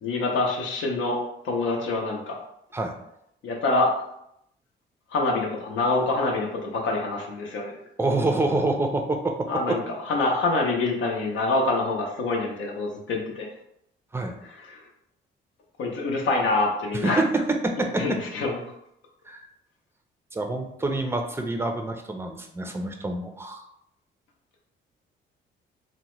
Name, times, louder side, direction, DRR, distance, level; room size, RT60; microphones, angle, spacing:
voice 1, 0.0-1.2 1.4-2.4 3.4-4.0 5.1-7.8 9.5-13.5 14.5-14.9 15.8-17.2 18.0-18.7, left 2 dB, 75° left, 0 dB, 0.7 m, -26 dB
voice 2, 8.0-9.8 14.1-14.4 17.0-17.3 17.6-18.0 19.3-19.5 20.3-23.6, right 2 dB, 10° right, 4 dB, 0.4 m, -27 dB
2.8 x 2.1 x 3.0 m, 0.78 s
cardioid pair, 90°, 20 cm